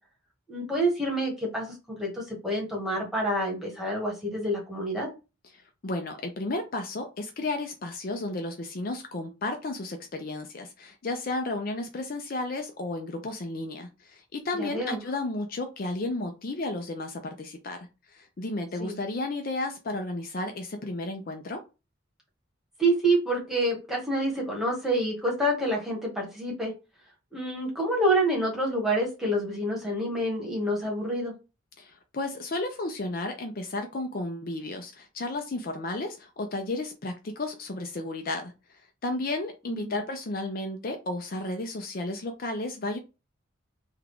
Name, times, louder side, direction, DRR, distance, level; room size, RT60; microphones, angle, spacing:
voice 1, 0.5-5.1 14.6-15.0 18.8-19.0 22.8-26.7 27.3-31.3 39.7-39.9, right 1 dB, ahead, 1.3 m, -27 dB
voice 2, 5.5-17.8 18.1-21.6 31.8-38.5 39.0-43.0, left 2 dB, 45° left, 0.5 m, -33 dB
3.6 x 2.3 x 3.5 m
head